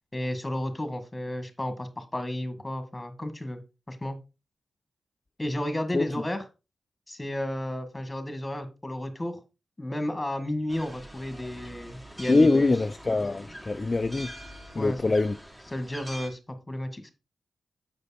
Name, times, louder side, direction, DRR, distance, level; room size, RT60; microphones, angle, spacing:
voice 1, 0.1-3.6 3.9-4.2 5.4-6.4 7.1-9.4 9.8-12.7 14.8-15.1 15.7-17.1, left 1 dB, 20° left, 1.9 m, -32 dB
sound 1, 10.7-16.3, equal, 10° right, 2.2 m, -44 dB
voice 2, 12.3-14.3 14.7-15.4, left 3 dB, 35° left, 0.5 m, -23 dB
7.9 x 5.1 x 4.2 m
cardioid pair, 55°, 0 cm